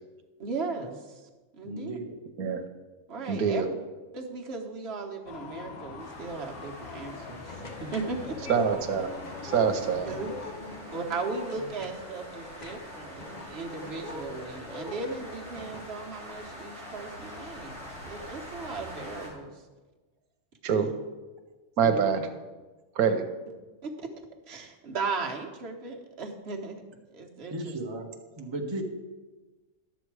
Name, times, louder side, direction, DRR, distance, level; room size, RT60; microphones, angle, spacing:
voice 1, 0.4-2.0 3.1-3.6 4.1-8.4 10.0-10.3 10.9-19.6 20.7-20.9 21.8-22.3 23.8-24.1 24.5-26.8 27.1-27.8, right 4 dB, 50° right, 1 dB, 1.3 m, -37 dB
voice 2, 1.6-2.2 27.5-28.1 28.4-28.8, right 1 dB, 20° right, 2 dB, 0.9 m, -35 dB
voice 3, 3.3-3.7 8.5-9.1 9.4-10.1 20.6-20.9 21.8-22.2 23.0-23.2, right 6 dB, 85° right, 7 dB, 1.3 m, -25 dB
sound 1, 5.3-10.5, left 5 dB, 80° left, 1.3 m, -43 dB
sound 2, 6.0-19.3, equal, 55° left, 4.0 m, -45 dB
sound 3, 7.5-15.9, left 2 dB, 35° left, 0.9 m, -43 dB
11.5 x 7.3 x 4.7 m, 1.2 s
omnidirectional pair, 1.5 m